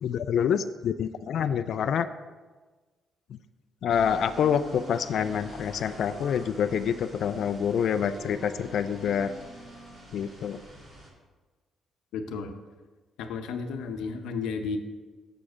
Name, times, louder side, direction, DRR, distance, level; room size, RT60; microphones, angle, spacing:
voice 1, 0.0-2.1 3.3-3.4 3.8-9.3 10.1-10.6, left 8 dB, 65° left, 11 dB, 0.3 m, -27 dB
sound 1, 3.9-11.1, equal, 40° right, 2.7 m, -48 dB
Wind instrument woodwind instrument, 4.2-10.1, left 1 dB, ahead, 1.4 m, -48 dB
voice 2, 12.1-12.5 13.2-14.8, left 5 dB, 85° left, 7 dB, 0.7 m, -33 dB
7.1 x 4.9 x 6.1 m, 1.3 s
cardioid pair, 90°, 0 cm